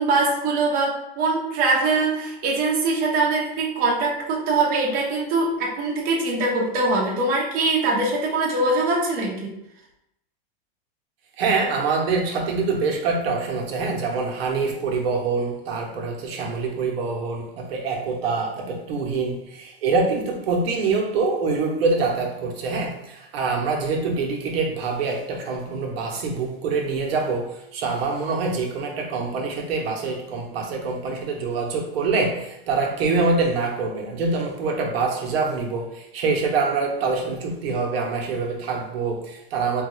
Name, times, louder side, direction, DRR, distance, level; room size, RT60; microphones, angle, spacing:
voice 1, 0.0-9.5, right 3 dB, 30° right, -2 dB, 0.7 m, -22 dB
voice 2, 11.4-39.8, right 4 dB, 80° right, 0 dB, 0.9 m, -25 dB
3.6 x 2.3 x 3.0 m, 0.83 s
supercardioid pair, 145°, 30 cm